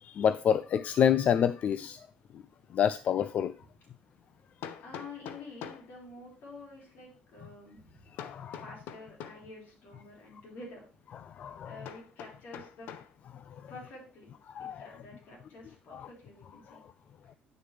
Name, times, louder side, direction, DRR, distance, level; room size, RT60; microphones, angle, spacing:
voice 1, 0.0-2.0 2.7-3.5 8.2-8.6 11.4-11.8 14.5-14.9 15.9-16.1, left 8 dB, 50° left, 0.3 m, -28 dB
Hammer, 3.0-3.1 4.6-5.9 8.2-9.5 11.8-13.1, left 9 dB, 85° left, 0.7 m, -44 dB
voice 2, 4.8-8.0 8.5-10.9 11.6-12.9 13.7-14.3 14.6-16.8, left 2 dB, 65° left, 4.2 m, -48 dB
9.1 x 6.5 x 3.3 m
cardioid pair, 125°, 3 cm